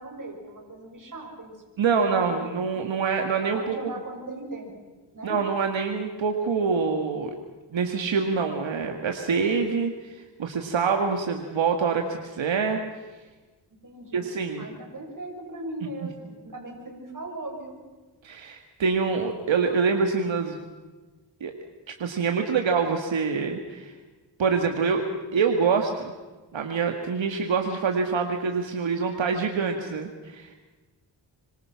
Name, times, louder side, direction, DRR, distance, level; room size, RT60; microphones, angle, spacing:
voice 1, 0.0-1.6 2.2-2.4 3.4-5.4 13.8-14.3 14.6-17.8, right 2 dB, 45° right, 1 dB, 6.8 m, -39 dB
voice 2, 1.8-3.9 5.2-7.3 7.7-12.8 14.1-14.6 18.2-20.6 21.4-21.5 21.9-23.9 24.4-25.0 25.3-26.1 26.5-30.5, right 5 dB, 90° right, 4 dB, 1.9 m, -25 dB
26.5 x 25.0 x 5.9 m, 1.3 s
cardioid pair, 60°, 44 cm